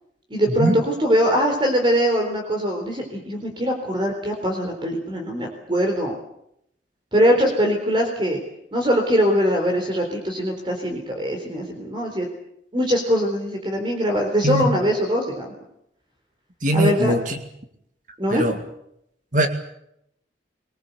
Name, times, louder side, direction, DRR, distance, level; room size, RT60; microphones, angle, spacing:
voice 1, 0.3-6.1 7.1-8.4 8.7-12.3 12.7-15.5 16.7-17.1 18.2-18.5, equal, 25° right, 3 dB, 3.8 m, -22 dB
voice 2, 16.6-17.4 18.3-18.6 19.3-19.5, right 1 dB, 45° right, 6 dB, 2.3 m, -20 dB
24.0 x 20.0 x 8.2 m, 0.77 s
head